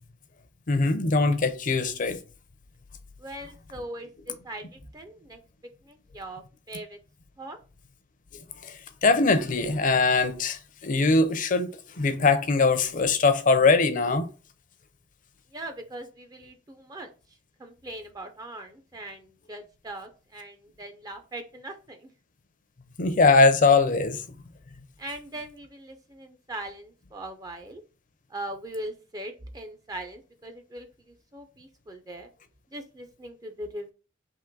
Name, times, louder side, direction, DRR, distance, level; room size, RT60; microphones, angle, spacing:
voice 1, 0.7-2.2 8.3-14.3 23.0-24.2, left 3 dB, 45° left, 0.6 m, -22 dB
voice 2, 3.2-5.4 5.8-7.0 7.4-7.6 15.5-17.1 17.6-22.1 25.0-27.8 28.3-32.3 32.7-33.9, right 1 dB, 20° right, 0.4 m, -40 dB
3.7 x 2.9 x 4.5 m
head